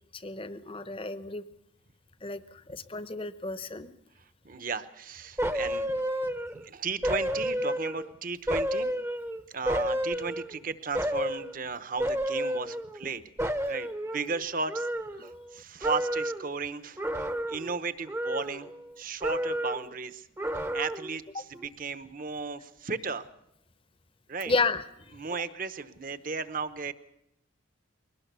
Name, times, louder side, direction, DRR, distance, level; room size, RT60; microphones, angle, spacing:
voice 1, 0.1-1.4 2.2-3.9 24.5-25.2, left 3 dB, 25° left, 13 dB, 0.8 m, -32 dB
voice 2, 4.4-8.9 9.5-13.2 13.7-14.9 15.2-17.0 17.5-18.7 19.0-20.3 20.7-23.3 24.3-24.5 25.1-26.9, right 4 dB, 45° right, 13 dB, 1.0 m, -35 dB
sound 1, 5.4-6.7 7.0-8.1 8.5-10.6 10.9-11.5 12.0-13.1 13.4-15.5 15.8-16.5 17.0-17.8 18.1-18.9 19.2-19.9 20.4-21.2 21.5-21.7, equal, 10° right, 0.8 m, -31 dB
22.0 x 18.5 x 6.9 m, 0.80 s
head